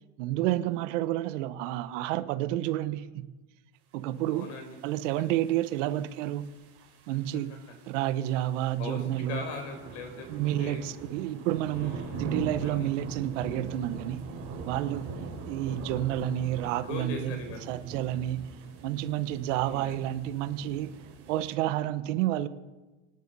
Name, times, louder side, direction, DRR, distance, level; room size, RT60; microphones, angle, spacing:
voice 1, 0.2-3.3 3.9-4.5 4.8-6.5 7.1-7.5 7.9-9.4 10.3-14.3 14.6-15.1 15.5-17.4 17.7-18.4 18.8-20.9 21.3-22.5, right 13 dB, 75° right, 13 dB, 1.1 m, -30 dB
voice 2, 4.3-4.7 8.8-10.8 11.7-12.3 12.6-12.9 16.6-17.7 19.6-20.0, left 4 dB, 75° left, 5 dB, 4.9 m, -40 dB
sound 1, 4.4-21.5, right 4 dB, 40° right, 3.9 m, -42 dB
25.0 x 10.0 x 5.5 m, 1.2 s
supercardioid pair, 145°, 37 cm